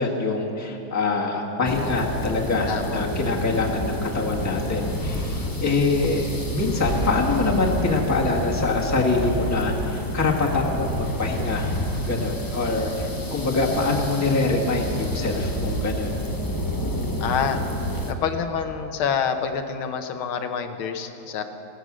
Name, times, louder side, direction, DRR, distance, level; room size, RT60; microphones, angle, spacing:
voice 1, 0.0-11.7 12.0-16.2, left 3 dB, 10° left, -2 dB, 1.4 m, -24 dB
sound 1, 1.6-18.1, equal, 25° left, 0.4 m, -29 dB
voice 2, 2.7-3.0 17.2-17.6 18.1-21.4, left 7 dB, 85° left, 7 dB, 1.7 m, -27 dB
16.5 x 13.5 x 6.2 m, 2.9 s
omnidirectional pair, 2.2 m